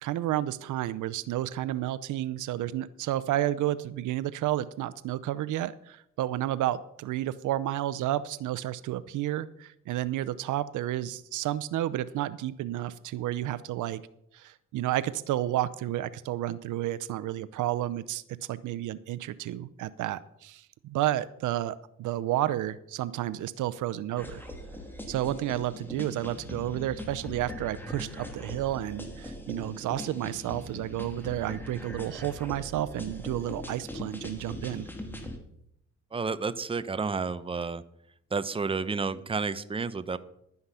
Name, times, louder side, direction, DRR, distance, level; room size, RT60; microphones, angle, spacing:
voice 1, 0.0-14.0 14.3-18.2 18.5-24.4 25.1-34.9, right 13 dB, 80° right, 16 dB, 0.7 m, -31 dB
sound 1, 24.2-35.4, left 1 dB, 5° left, 2.7 m, -41 dB
voice 2, 36.1-37.8 38.3-40.2, right 4 dB, 20° right, 14 dB, 0.8 m, -31 dB
12.0 x 9.6 x 5.6 m, 0.75 s
cardioid pair, 90°, 30 cm